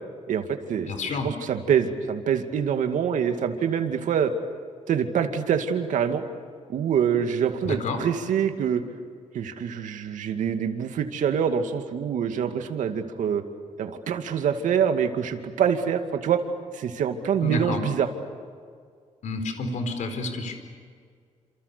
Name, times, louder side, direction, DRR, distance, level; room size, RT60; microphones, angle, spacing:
voice 1, 0.3-0.9 1.2-4.3 4.9-6.2 6.7-8.8 9.3-13.4 13.8-16.4 16.7-18.1, right 8 dB, 80° right, 6 dB, 2.4 m, -25 dB
voice 2, 0.9-1.3 7.6-8.0 17.4-17.8 19.2-20.5, left 2 dB, 75° left, 7 dB, 4.5 m, -29 dB
29.0 x 28.0 x 6.9 m, 2.1 s
cardioid pair, 115°, 13 cm